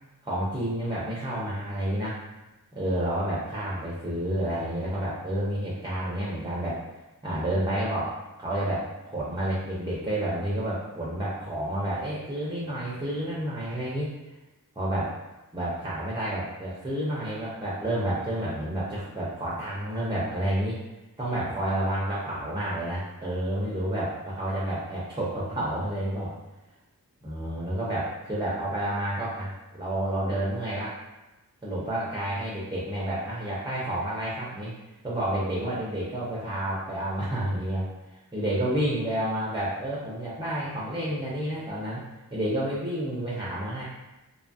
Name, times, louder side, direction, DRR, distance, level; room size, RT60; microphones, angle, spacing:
voice 1, 0.2-2.2 2.7-6.8 7.2-8.1 8.4-14.3 14.7-15.1 15.5-20.8 21.2-26.3 27.2-31.0 31.6-34.7 35.0-42.0 42.3-43.8, right 1 dB, 15° right, -7 dB, 0.6 m, -30 dB
2.7 x 2.3 x 2.6 m, 1.0 s
wide cardioid pair, 70°, 37 cm